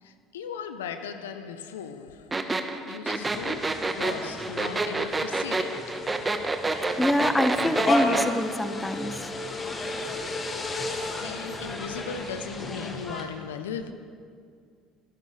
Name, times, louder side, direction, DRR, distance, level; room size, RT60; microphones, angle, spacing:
voice 1, 0.0-6.3 10.8-13.9, left 6 dB, 85° left, 0.7 m, -38 dB
sound 1, 2.3-8.3, right 3 dB, 20° right, 1.1 m, -27 dB
sound 2, 3.2-13.2, left 2 dB, 35° left, 2.0 m, -33 dB
voice 2, 7.0-9.3, left 1 dB, 10° left, 0.9 m, -25 dB
23.5 x 11.5 x 3.3 m
hypercardioid pair, 65°, 0 cm